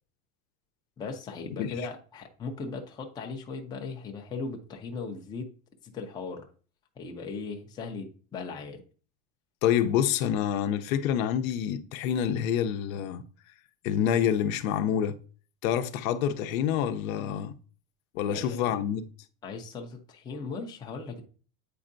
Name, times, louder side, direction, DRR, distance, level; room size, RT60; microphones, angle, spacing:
voice 1, 1.0-5.5 5.8-6.5 7.0-8.8 18.3-18.8 19.4-21.2, left 4 dB, 10° left, 0.4 m, -38 dB
voice 2, 9.6-13.2 13.8-15.2 15.6-17.6 18.1-19.1, left 9 dB, 75° left, 0.8 m, -27 dB
8.4 x 4.4 x 2.6 m
supercardioid pair, 160°, 41 cm